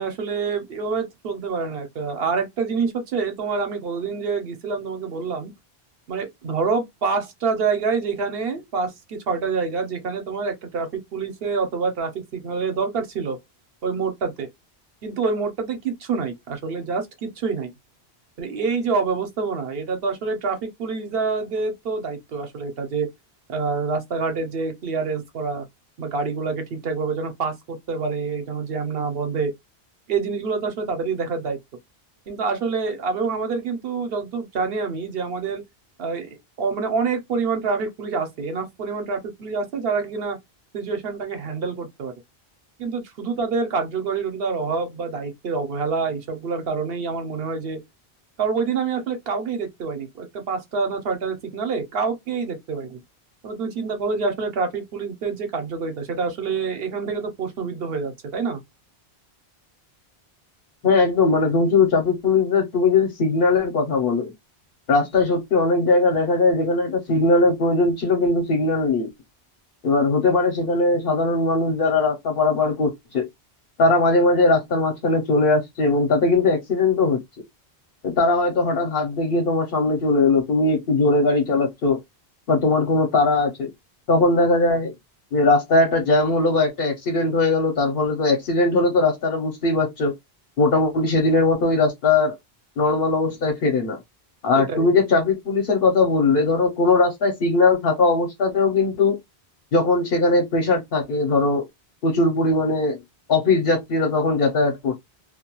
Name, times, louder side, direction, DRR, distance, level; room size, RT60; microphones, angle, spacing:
voice 1, 0.0-5.5 6.1-13.4 13.8-14.5 15.0-17.7 18.4-23.1 23.5-25.6 26.0-29.5 30.1-31.6 32.3-35.6 36.0-40.4 40.7-42.1 42.8-47.8 48.4-53.0 53.4-58.6 94.6-94.9, right 5 dB, 70° right, 0.9 m, -26 dB
voice 2, 60.8-64.3 64.9-69.1 69.8-73.3 73.8-77.2 78.0-82.0 82.5-83.7 84.1-84.9 85.3-90.1 90.6-92.3 92.8-94.0 94.4-99.2 99.7-101.7 102.0-103.0 103.3-105.0, left 3 dB, 65° left, 0.8 m, -20 dB
2.2 x 2.2 x 2.9 m
omnidirectional pair, 1.1 m